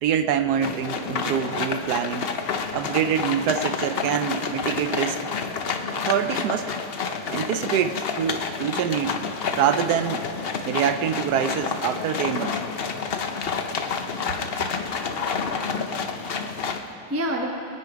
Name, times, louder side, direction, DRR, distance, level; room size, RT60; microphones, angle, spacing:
voice 1, 0.0-2.3 2.7-5.3 6.0-6.7 7.3-9.2 9.5-10.3 10.7-12.6, right 8 dB, 75° right, 10 dB, 1.0 m, -25 dB
sound 1, 0.6-16.8, left 5 dB, 55° left, 0.6 m, -29 dB
voice 2, 14.9-17.5, equal, 10° right, 1 dB, 0.9 m, -34 dB
22.0 x 9.2 x 5.0 m, 2.5 s
omnidirectional pair, 1.9 m